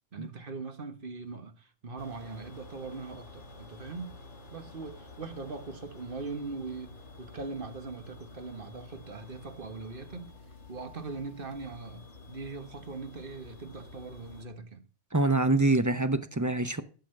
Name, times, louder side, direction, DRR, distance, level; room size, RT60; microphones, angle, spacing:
voice 1, 0.1-4.1 4.5-10.3 10.7-14.9, right 4 dB, 45° right, 1.5 m, -41 dB
sound 1, 2.0-14.5, left 3 dB, 65° left, 2.3 m, -50 dB
voice 2, 15.1-16.8, right 2 dB, 20° right, 0.5 m, -25 dB
12.0 x 6.5 x 6.5 m
omnidirectional pair, 1.3 m